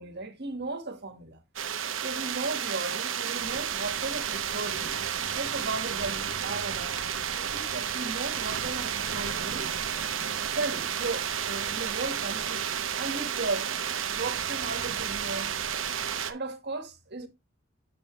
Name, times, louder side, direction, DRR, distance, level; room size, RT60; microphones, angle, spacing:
voice 1, 0.0-1.4 2.0-4.9 5.3-7.0 7.3-9.7 10.3-12.7 12.9-13.7 14.0-15.6 16.3-17.3, right 3 dB, 60° right, 1.7 m, -36 dB
sound 1, 1.6-16.3, right 8 dB, 80° right, 0.9 m, -31 dB
8.2 x 7.2 x 3.1 m
head